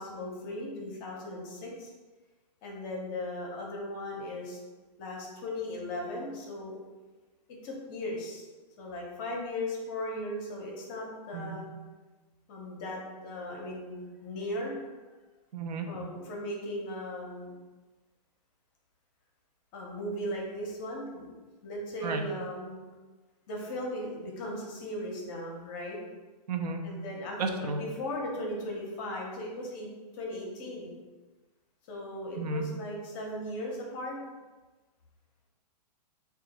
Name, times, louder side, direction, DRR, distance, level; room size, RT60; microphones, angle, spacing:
voice 1, 0.0-1.9 2.6-4.6 5.0-6.8 7.5-8.4 8.8-11.7 12.5-14.8 15.9-17.6 19.7-21.3 21.6-22.8 23.5-26.0 26.8-30.9 31.9-34.2, left 1 dB, 30° left, -1 dB, 0.6 m, -37 dB
voice 2, 15.5-15.9 22.0-22.2 26.5-26.8 27.4-27.8 32.3-32.7, right 4 dB, 70° right, 4 dB, 0.5 m, -32 dB
2.8 x 2.3 x 4.0 m, 1.3 s
hypercardioid pair, 160°, 21 cm